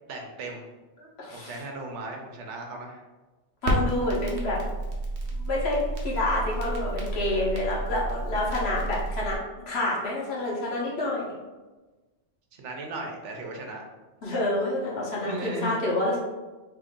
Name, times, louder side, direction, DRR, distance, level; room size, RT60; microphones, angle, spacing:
voice 1, 0.1-0.7 1.3-3.0 12.5-13.8 15.2-15.7, right 1 dB, 90° right, 2 dB, 1.0 m, -36 dB
voice 2, 1.2-1.6 3.6-4.6 5.4-9.4 9.7-11.3 14.2-16.2, left 2 dB, 65° left, -5 dB, 1.3 m, -28 dB
Crackle, 3.6-9.4, right 2 dB, 55° right, 0.9 m, -31 dB
3.1 x 2.6 x 3.6 m, 1.2 s
omnidirectional pair, 1.2 m